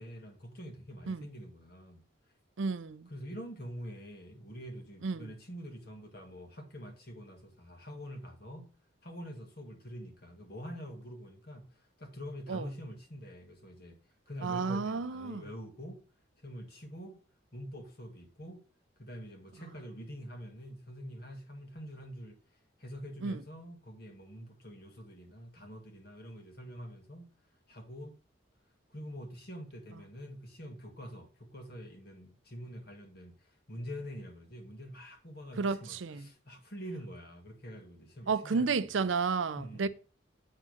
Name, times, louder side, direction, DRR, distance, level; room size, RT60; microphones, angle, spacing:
voice 1, 0.0-2.0 3.1-8.7 9.0-11.7 12.0-14.0 14.3-16.0 16.4-17.2 17.5-18.6 19.0-22.4 22.8-27.3 27.7-28.2 28.9-33.3 33.7-39.0 39.5-39.9, equal, 50° left, 1.8 m, -45 dB
voice 2, 2.6-3.1 5.0-5.3 12.5-12.7 14.4-15.4 23.2-23.4 35.6-36.2 38.3-39.9, right 4 dB, 75° right, 0.5 m, -32 dB
8.9 x 3.7 x 6.3 m
head